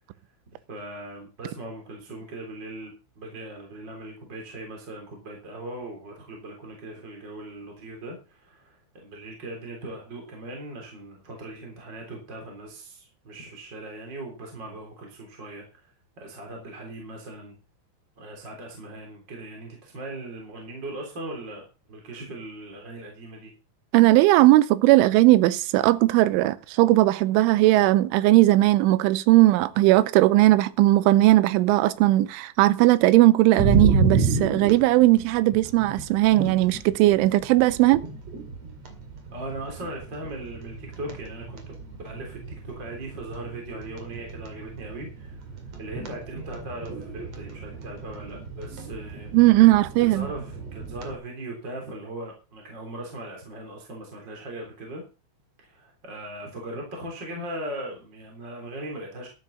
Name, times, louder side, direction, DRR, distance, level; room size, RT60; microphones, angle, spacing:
voice 1, 0.7-15.8 16.2-17.5 18.2-21.6 21.9-23.5 39.3-45.5 45.8-49.3 50.0-55.0 55.6-59.3, right 1 dB, 25° right, 3.5 m, -39 dB
voice 2, 23.9-38.0 49.3-50.3, right 17 dB, 85° right, 3.2 m, -18 dB
sound 1, 33.6-51.2, right 4 dB, 45° right, 2.5 m, -31 dB
12.5 x 12.0 x 4.1 m
omnidirectional pair, 5.6 m